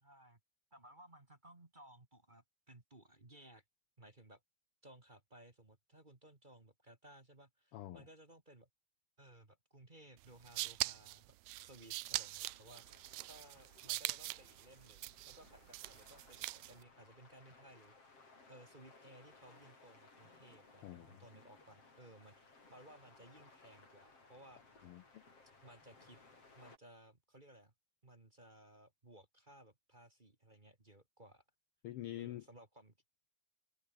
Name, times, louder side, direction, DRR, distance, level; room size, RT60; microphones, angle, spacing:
voice 1, 0.0-0.4 0.7-3.6 4.0-4.4 4.8-8.7 9.2-18.1 18.5-24.8 25.6-26.2 26.6-27.7 28.0-31.4 32.2-32.9, right 1 dB, 20° right, 1.8 m, -60 dB
voice 2, 7.7-8.0 20.8-21.2 24.8-25.2 31.8-32.4, left 14 dB, 85° left, 1.2 m, -46 dB
sound 1, 10.2-16.8, right 19 dB, 75° right, 1.7 m, -43 dB
sound 2, 12.4-26.8, left 3 dB, 50° left, 7.0 m, -63 dB
omnidirectional pair, 3.5 m